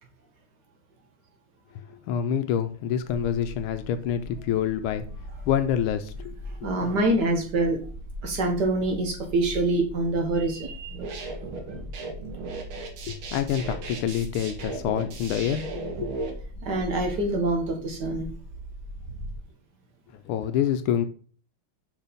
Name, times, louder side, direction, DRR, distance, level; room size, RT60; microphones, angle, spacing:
voice 1, 2.1-5.1 5.5-6.3 13.1-15.6 16.0-16.1 20.3-21.1, left 9 dB, 85° left, 10 dB, 1.4 m, -26 dB
sound 1, 3.0-19.4, left 1 dB, 10° left, 1.1 m, -41 dB
voice 2, 6.6-7.8 8.2-11.2 16.6-18.3, right 2 dB, 55° right, 4 dB, 1.6 m, -25 dB
sound 2, 10.8-16.3, right 3 dB, 75° right, 2.1 m, -36 dB
5.6 x 4.6 x 5.0 m, 0.43 s
omnidirectional pair, 2.3 m